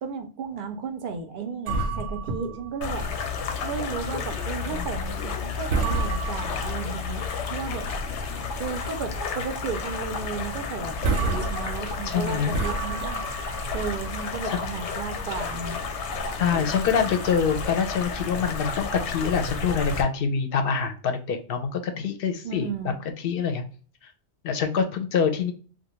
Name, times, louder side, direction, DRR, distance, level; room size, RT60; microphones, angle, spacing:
voice 1, 0.0-3.1 3.6-7.9 8.6-13.2 13.7-15.8 22.4-23.0, right 5 dB, 60° right, 6 dB, 0.6 m, -34 dB
sound 1, 1.7-3.5 3.8-4.0 4.5-4.7 5.2-5.4 5.7-7.0 7.5-8.4 8.7-8.8 9.3-9.5 9.8-9.9 10.5-10.6 10.9-14.6, right 3 dB, 85° right, 0.9 m, -30 dB
sound 2, 2.8-20.0, left 5 dB, 90° left, 0.9 m, -32 dB
voice 2, 12.0-12.5 14.4-14.6 16.4-22.7 23.2-23.6 24.4-25.5, left 6 dB, 60° left, 6 dB, 0.7 m, -25 dB
2.4 x 2.1 x 2.9 m, 0.40 s
omnidirectional pair, 1.1 m